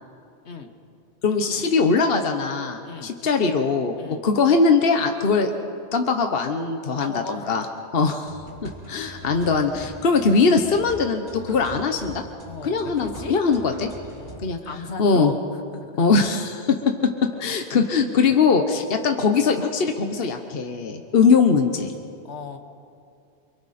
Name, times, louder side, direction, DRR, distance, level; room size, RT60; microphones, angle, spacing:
voice 1, 1.2-5.5 5.9-7.6 7.9-8.3 8.6-12.2 12.6-13.9 14.4-14.6 15.0-15.3 16.0-21.9, left 4 dB, 60° left, 5 dB, 1.2 m, -21 dB
voice 2, 2.8-3.1 4.0-4.3 7.0-7.6 12.5-13.4 14.1-15.4 15.7-16.0 22.2-22.6, left 4 dB, 75° left, 6 dB, 1.7 m, -36 dB
sound 1, 8.2-14.6, right 2 dB, 45° right, 4.0 m, -42 dB
28.0 x 25.0 x 4.3 m, 2.5 s
omnidirectional pair, 1.1 m